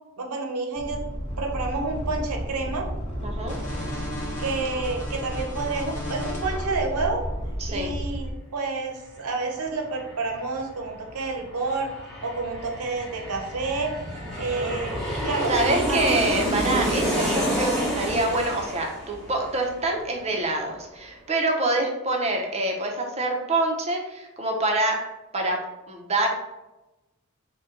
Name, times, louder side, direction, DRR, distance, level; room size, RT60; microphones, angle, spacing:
voice 1, 0.2-1.0 1.4-2.9 4.4-7.2 7.7-11.9 12.2-13.9 14.4-16.2, right 3 dB, 90° right, 2 dB, 0.7 m, -29 dB
sound 1, 0.7-8.3, equal, 30° left, 1.0 m, -32 dB
voice 2, 3.2-3.6 7.6-7.9 14.4-14.8 15.5-25.1 25.3-25.6 25.9-26.3, right 2 dB, 30° right, 1 dB, 0.6 m, -26 dB
Aircraft, 8.8-8.9 9.1-20.4 20.7-20.8, equal, ahead, 1.0 m, -30 dB
4.1 x 2.2 x 3.7 m, 1.0 s
head